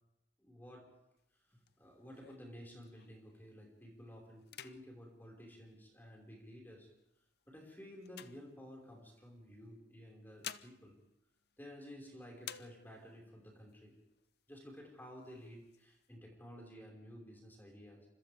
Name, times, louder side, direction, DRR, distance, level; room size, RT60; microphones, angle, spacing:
voice 1, 0.4-0.9 1.5-6.9 7.5-11.0 11.6-14.0 14.5-18.1, equal, 10° left, -1 dB, 5.4 m, -53 dB
sound 1, 1.2-3.4 3.8-4.1 4.4-6.3 7.0-9.1 10.0-12.0 12.4-13.3 13.7-13.8 14.1-14.7 15.2-16.1, left 10 dB, 60° left, 0.7 m, -53 dB
29.0 x 26.0 x 3.6 m, 0.86 s
head